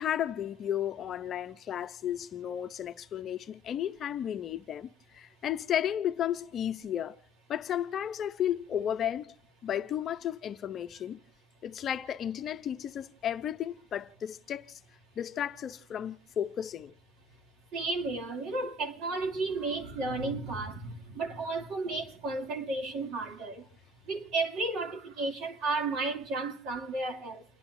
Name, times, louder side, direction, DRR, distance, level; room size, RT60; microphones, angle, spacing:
voice 1, 0.0-7.1 7.5-9.3 9.6-11.2 11.6-14.8 15.2-16.9, left 10 dB, 40° left, 0.7 m, -33 dB
voice 2, 17.7-23.7 24.1-27.4, right 3 dB, 60° right, 2.8 m, -33 dB
30.0 x 11.0 x 2.7 m
cardioid pair, 135°, 0 cm